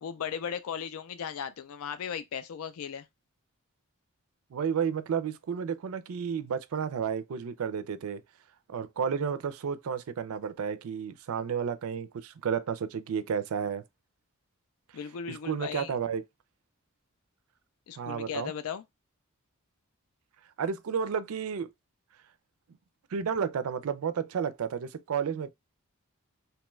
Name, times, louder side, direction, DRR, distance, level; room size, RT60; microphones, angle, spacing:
voice 1, 0.0-3.1 14.9-15.9 17.9-18.8, left 7 dB, 75° left, 0.4 m, -37 dB
voice 2, 4.5-8.2 8.7-13.8 15.3-16.2 18.0-18.5 20.6-21.7 23.1-25.5, right 7 dB, 70° right, 0.4 m, -32 dB
2.8 x 2.2 x 3.0 m
head